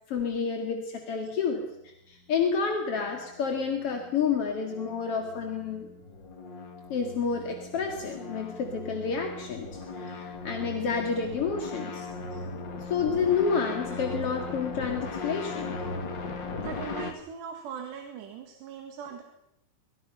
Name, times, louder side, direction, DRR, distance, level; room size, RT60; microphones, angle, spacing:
voice 1, 0.1-1.6 2.1-5.9 6.9-12.1 12.8-15.8, left 6 dB, 45° left, 3 dB, 2.1 m, -29 dB
sound 1, 2.6-17.1, left 3 dB, 60° left, 1.1 m, -38 dB
voice 2, 16.6-19.2, right 7 dB, 70° right, 4 dB, 3.9 m, -40 dB
26.0 x 23.5 x 5.6 m, 0.82 s
omnidirectional pair, 5.2 m